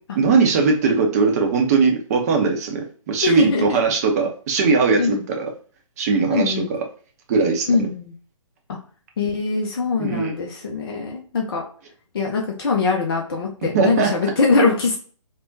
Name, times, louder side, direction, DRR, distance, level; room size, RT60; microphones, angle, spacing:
voice 1, 0.2-5.5 6.0-6.8 7.3-7.7 10.0-10.3 13.7-14.1, right 4 dB, 30° right, 3 dB, 0.6 m, -19 dB
voice 2, 3.2-3.8 5.0-5.2 6.3-6.7 7.7-8.1 8.7-8.8 9.2-11.6 12.1-15.0, left 4 dB, 45° left, 1 dB, 0.5 m, -22 dB
3.4 x 2.1 x 2.6 m, 0.42 s
figure-of-eight pair, 130°, 17 cm